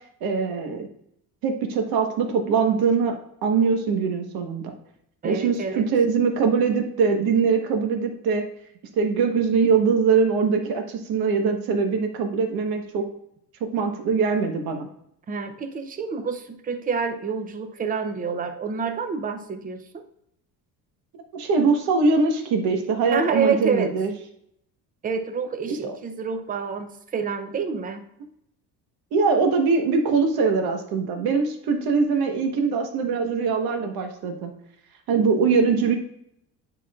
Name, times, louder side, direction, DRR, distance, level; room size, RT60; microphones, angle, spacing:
voice 1, 0.2-0.9 1.4-3.2 3.4-4.7 5.2-8.4 9.0-13.0 13.7-14.9 21.3-24.1 25.7-25.9 29.1-34.5 35.1-36.0, right 5 dB, 75° right, 4 dB, 1.3 m, -22 dB
voice 2, 5.2-5.9 15.3-20.0 23.1-23.9 25.0-28.1, right 5 dB, 25° right, 8 dB, 0.6 m, -28 dB
9.8 x 4.5 x 2.4 m, 0.75 s
cardioid pair, 150°, 37 cm